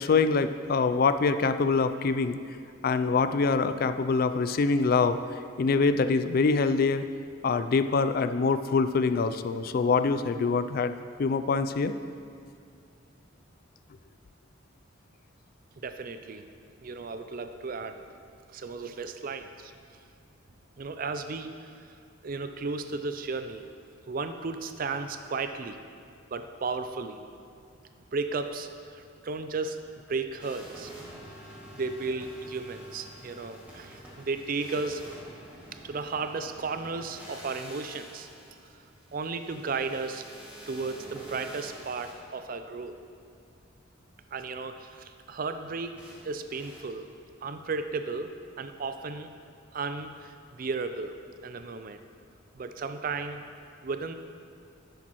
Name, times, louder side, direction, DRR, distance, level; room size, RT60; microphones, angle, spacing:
voice 1, 0.0-2.4 2.8-5.2 5.6-7.1 7.4-10.9 11.2-11.9, left 4 dB, 45° left, 11 dB, 0.3 m, -24 dB
voice 2, 15.8-16.5 16.8-18.0 18.5-19.7 20.8-21.7 22.2-23.6 24.1-25.8 26.3-27.2 28.1-29.8 30.1-30.9 31.7-35.0 35.8-38.3 39.1-40.3 40.7-43.0 44.3-45.9 46.2-47.1 47.4-49.3 49.7-51.2 51.4-52.0 52.6-53.4 53.8-54.1, right 4 dB, 45° right, 8 dB, 0.4 m, -34 dB
sound 1, 30.4-42.1 46.0-46.1 46.5-46.8, right 1 dB, 5° right, 2.0 m, -47 dB
10.5 x 8.1 x 3.0 m, 2.3 s
head